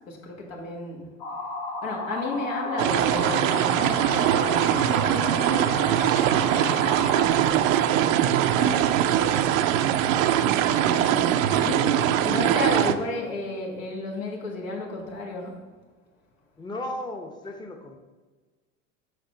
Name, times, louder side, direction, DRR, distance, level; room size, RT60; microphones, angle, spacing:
voice 1, 0.1-1.0 1.8-6.0 7.4-9.5 10.2-15.5, left 2 dB, 85° left, -1 dB, 1.6 m, -33 dB
sound 1, 1.2-7.3, left 2 dB, 55° left, 1.6 m, -33 dB
sound 2, 2.8-12.9, right 11 dB, 75° right, 0.5 m, -22 dB
voice 2, 16.6-18.0, left 1 dB, 10° left, 4 dB, 0.6 m, -35 dB
6.5 x 3.6 x 5.4 m, 1.3 s
hypercardioid pair, 85°, 40 cm